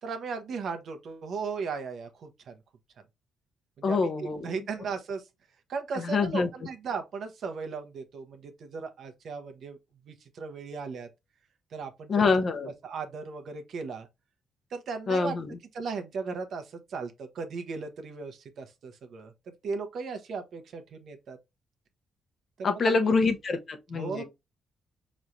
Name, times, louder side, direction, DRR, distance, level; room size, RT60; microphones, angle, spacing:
voice 1, 0.0-2.5 3.8-5.2 5.7-9.8 10.1-11.1 11.7-12.2 12.8-14.1 14.7-15.4 15.7-21.4 22.6-23.1 23.9-24.2, right 5 dB, 65° right, 0.8 m, -36 dB
voice 2, 3.8-4.5 6.0-6.5 12.1-12.7 15.1-15.6 22.6-24.2, left 4 dB, 50° left, 0.8 m, -26 dB
4.4 x 3.1 x 2.6 m
cardioid pair, 80°, 0 cm